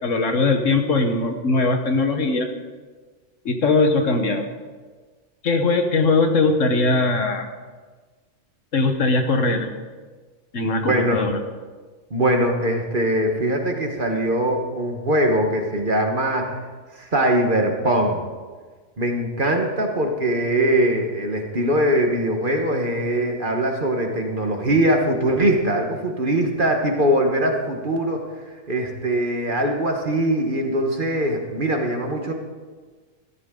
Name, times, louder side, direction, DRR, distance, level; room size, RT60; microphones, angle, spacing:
voice 1, 0.0-2.5 3.4-4.4 5.4-7.5 8.7-9.7 10.5-11.4, left 3 dB, 65° left, 5 dB, 1.5 m, -20 dB
voice 2, 10.7-11.2 12.1-16.5 17.0-18.2 19.0-28.2 28.7-32.3, right 1 dB, 40° right, 3 dB, 1.5 m, -22 dB
14.0 x 13.5 x 3.8 m, 1.4 s
omnidirectional pair, 1.4 m